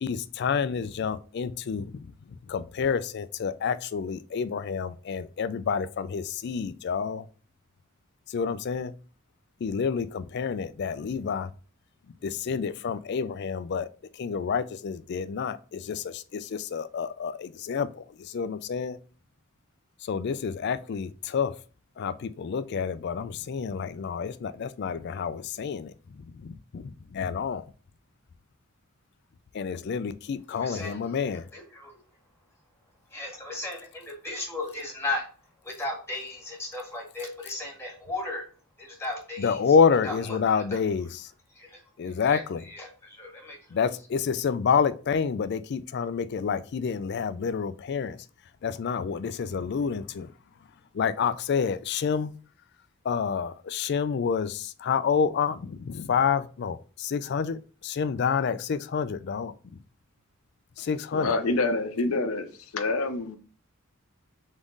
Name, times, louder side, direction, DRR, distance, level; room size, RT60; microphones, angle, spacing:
voice 1, 0.0-2.1 2.5-7.3 8.3-8.9 9.6-11.5 12.2-13.9 14.1-19.0 20.0-21.6 22.0-27.7 29.5-31.5 39.4-41.3 42.0-42.6 43.7-48.2 48.6-50.3 50.9-52.3 53.0-59.6 60.8-61.4, left 6 dB, 50° left, 0.3 m, -28 dB
voice 2, 30.5-31.0 31.5-31.9 33.1-35.3 35.6-38.4 38.8-39.6 40.0-40.8 41.5-42.4 42.7-43.6, left 2 dB, 10° left, 1.6 m, -36 dB
voice 3, 61.1-62.5 62.7-63.4, left 3 dB, 85° left, 0.7 m, -26 dB
3.6 x 3.6 x 3.8 m
head